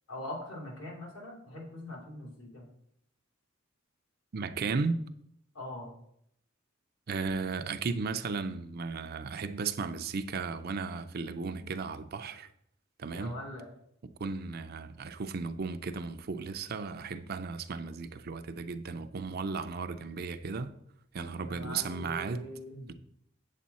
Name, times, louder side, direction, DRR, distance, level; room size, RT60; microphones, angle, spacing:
voice 1, 0.1-2.7 5.5-5.9 13.1-13.7 21.4-22.9, left 1 dB, 70° left, 2.9 m, -42 dB
voice 2, 4.3-5.0 7.1-12.5 13.0-13.4 14.0-20.7 21.1-22.5 22.9-23.0, right 4 dB, 50° right, 0.5 m, -35 dB
8.1 x 7.4 x 4.1 m
head